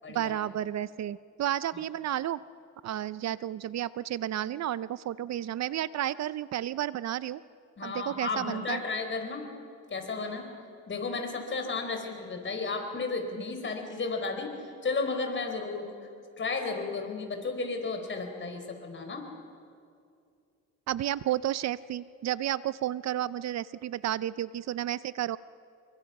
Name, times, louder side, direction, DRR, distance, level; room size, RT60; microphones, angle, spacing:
voice 1, 0.1-2.4 2.8-7.4 7.8-8.8 20.9-25.4, right 12 dB, 60° right, 17 dB, 0.6 m, -32 dB
voice 2, 7.8-9.4 9.9-10.5 10.9-14.5 14.8-15.9 16.4-19.2, left 4 dB, 40° left, 4 dB, 4.6 m, -33 dB
28.5 x 23.5 x 5.9 m, 2.4 s
cardioid pair, 90°, 30 cm